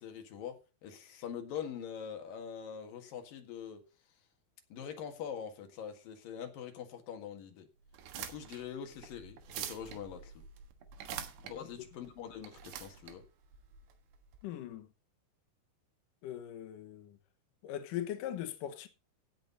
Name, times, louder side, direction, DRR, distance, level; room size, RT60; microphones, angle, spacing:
voice 1, 0.0-3.8 4.7-7.7 8.2-10.4 11.4-13.2, left 8 dB, 55° left, 2.9 m, -44 dB
sound 1, 7.9-14.4, right 9 dB, 75° right, 3.5 m, -46 dB
voice 2, 14.4-14.9 16.2-17.2 17.6-18.9, left 11 dB, 90° left, 1.9 m, -40 dB
16.5 x 6.7 x 4.0 m
omnidirectional pair, 5.6 m